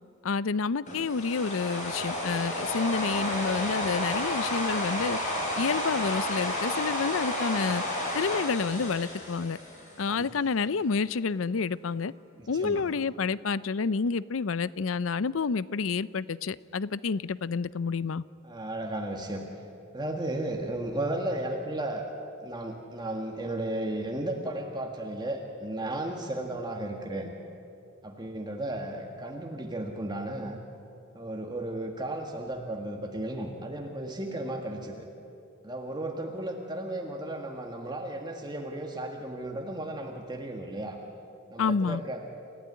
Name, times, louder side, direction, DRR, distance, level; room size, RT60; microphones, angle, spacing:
voice 1, 0.2-5.2 5.6-7.8 8.1-9.6 10.0-12.1 12.5-18.2 41.6-42.0, left 5 dB, 75° left, 18 dB, 0.5 m, -29 dB
sound 1, 0.9-10.1, left 1 dB, 40° left, 6.1 m, -31 dB
voice 2, 12.4-12.8 18.4-19.5 19.9-22.1 22.4-27.3 28.0-30.6 31.1-35.1 35.6-41.0 41.5-42.2, right 1 dB, 20° right, 2 dB, 1.7 m, -34 dB
28.5 x 15.5 x 9.7 m, 2.6 s
head